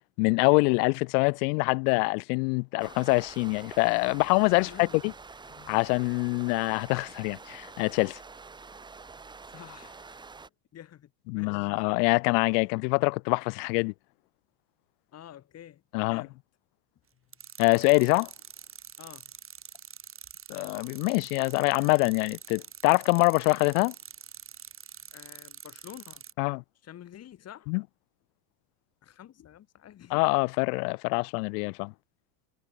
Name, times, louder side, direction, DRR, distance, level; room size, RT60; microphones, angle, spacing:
voice 1, 0.2-5.1 5.7-8.2 11.3-13.9 15.9-16.3 17.6-18.3 20.5-23.9 26.4-26.6 27.7-27.8 30.1-31.9, left 33 dB, 70° left, 0.5 m, -25 dB
sound 1, 2.8-10.5, right 4 dB, 10° right, 0.8 m, -47 dB
voice 2, 4.5-5.0 5.5-5.8 9.5-10.2 10.7-11.7 12.6-12.7 15.1-15.8 16.1-16.4 19.0-19.3 25.1-26.2 26.8-27.7 29.0-30.1, left 11 dB, 30° left, 2.1 m, -48 dB
sound 2, 17.3-26.3, right 8 dB, 25° right, 5.3 m, -47 dB
supercardioid pair, 140°, 48 cm